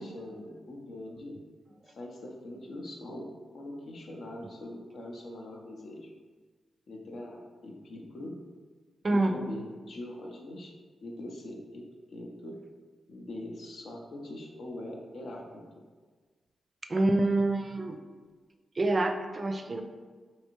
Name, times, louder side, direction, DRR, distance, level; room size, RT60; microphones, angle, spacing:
voice 1, 0.0-1.4 2.0-3.3 3.5-6.1 6.9-8.3 9.1-10.7 11.0-12.6 13.1-15.6, left 1 dB, 70° left, 0 dB, 0.5 m, -42 dB
voice 2, 16.9-18.0 18.8-19.8, right 2 dB, 45° right, 5 dB, 0.3 m, -26 dB
3.2 x 2.7 x 2.9 m, 1.5 s
supercardioid pair, 45°, 0 cm